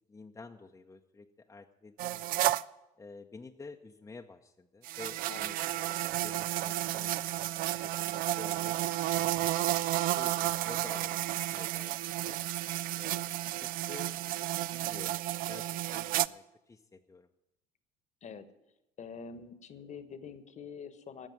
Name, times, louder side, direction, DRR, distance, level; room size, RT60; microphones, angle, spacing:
voice 1, 0.1-2.5 3.0-5.9 6.2-9.3 9.9-12.4 13.0-13.3 13.6-17.3, left 3 dB, 15° left, 3 dB, 0.8 m, -51 dB
sound 1, 2.0-2.6 4.8-16.3, right 15 dB, 45° right, 0.4 m, -32 dB
voice 2, 19.0-21.3, left 6 dB, 35° left, 12 dB, 1.2 m, -45 dB
12.5 x 7.2 x 9.4 m, 0.93 s
hypercardioid pair, 70°, 20 cm